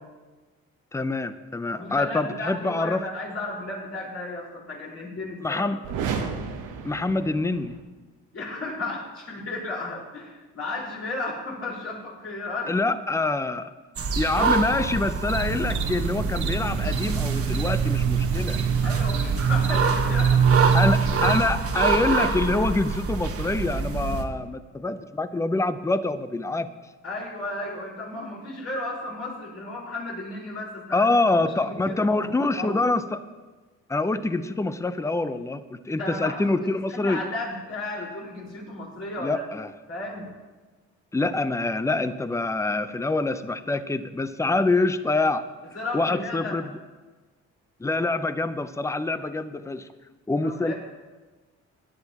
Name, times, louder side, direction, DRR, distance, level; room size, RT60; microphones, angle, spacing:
voice 1, 0.9-3.0 5.4-5.8 6.8-7.7 12.7-13.7 14.1-18.6 20.7-26.7 30.9-33.2 33.9-37.2 39.2-39.7 41.1-45.5 45.9-46.6 47.8-49.9 50.3-50.7, left 2 dB, 10° left, 12 dB, 0.6 m, -25 dB
voice 2, 1.7-5.6 8.3-13.0 18.8-20.8 27.0-31.3 31.6-32.9 35.9-39.5 39.9-40.3 45.7-46.6 50.4-50.7, left 2 dB, 50° left, -3 dB, 4.6 m, -34 dB
sound 1, 5.8-7.8, right 6 dB, 90° right, 1.1 m, -32 dB
sound 2, 14.0-24.2, right 4 dB, 50° right, 1.3 m, -26 dB
sound 3, 15.3-21.4, right 7 dB, 65° right, 1.2 m, -24 dB
19.5 x 10.5 x 3.0 m, 1.3 s
cardioid pair, 90°, 30 cm